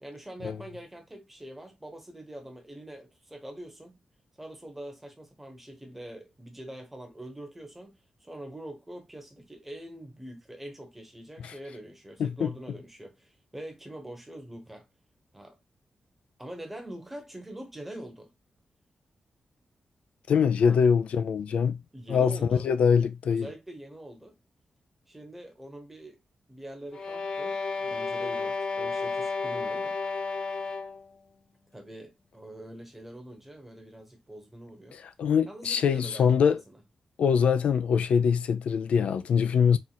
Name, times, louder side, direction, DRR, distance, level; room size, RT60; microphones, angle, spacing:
voice 1, 0.0-4.0 4.4-14.9 15.3-15.6 16.4-18.3 20.6-20.8 21.9-22.7 23.3-24.4 25.1-26.2 26.5-30.3 31.7-35.0 35.5-36.3 36.7-36.8, right 1 dB, 10° right, 1.0 m, -44 dB
voice 2, 12.2-12.5 20.3-21.8 22.1-23.5 35.2-36.6 37.2-39.8, left 7 dB, 85° left, 0.4 m, -23 dB
sound 1, 26.9-31.1, left 4 dB, 50° left, 1.0 m, -32 dB
4.4 x 2.5 x 4.0 m
wide cardioid pair, 175°, 2 cm